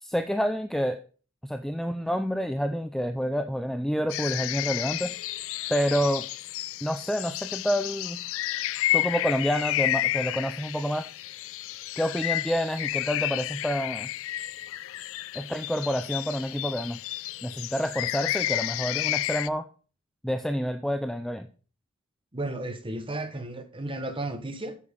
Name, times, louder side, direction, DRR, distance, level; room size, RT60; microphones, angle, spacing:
voice 1, 0.0-1.0 1.4-5.1 5.7-6.3 6.8-8.2 8.9-11.1 12.0-14.1 15.3-17.0 17.4-19.6 20.2-21.5, equal, ahead, 0.4 m, -28 dB
sound 1, 4.1-19.5, left 16 dB, 65° left, 0.3 m, -31 dB
voice 2, 22.3-24.8, right 2 dB, 25° right, 1.1 m, -33 dB
8.5 x 7.0 x 5.3 m
head